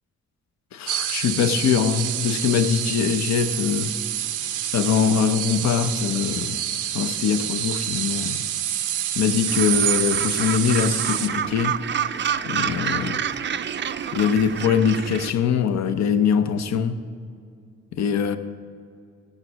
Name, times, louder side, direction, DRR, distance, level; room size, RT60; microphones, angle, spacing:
voice 1, 0.7-3.9 4.7-6.6 6.9-8.4 9.1-11.8 12.4-13.2 14.1-17.0 17.9-18.4, left 7 dB, 65° left, 0.8 m, -22 dB
sound 1, 0.9-11.3, right 11 dB, 80° right, 0.7 m, -27 dB
Gull seagull, 9.5-15.3, right 8 dB, 40° right, 0.5 m, -28 dB
17.0 x 6.3 x 6.1 m
cardioid pair, 90°, 30 cm